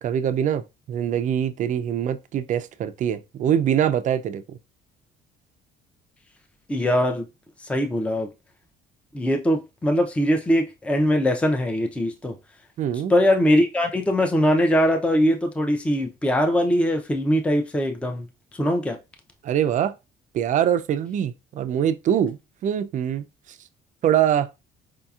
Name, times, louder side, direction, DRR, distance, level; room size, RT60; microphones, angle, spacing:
voice 1, 0.0-4.4 12.8-13.1 19.4-19.9 20.3-23.2 24.0-24.5, right 9 dB, 50° right, 0.4 m, -23 dB
voice 2, 6.7-7.3 7.6-8.3 9.1-12.4 13.1-18.3 18.5-19.0, equal, 5° left, 0.5 m, -21 dB
4.8 x 2.7 x 2.3 m
cardioid pair, 110°, 17 cm